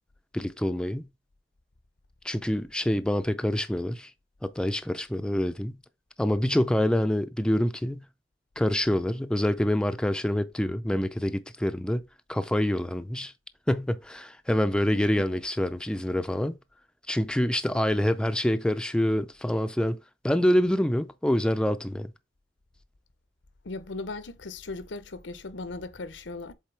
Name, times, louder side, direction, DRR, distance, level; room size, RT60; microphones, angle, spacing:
voice 1, 0.3-1.1 2.2-4.1 4.4-5.8 6.2-8.1 8.6-13.3 13.7-16.6 17.1-20.0 20.2-22.1, left 1 dB, 5° left, 0.4 m, -26 dB
voice 2, 14.9-15.3 23.6-26.5, left 3 dB, 85° left, 0.8 m, -38 dB
7.4 x 3.9 x 3.3 m
head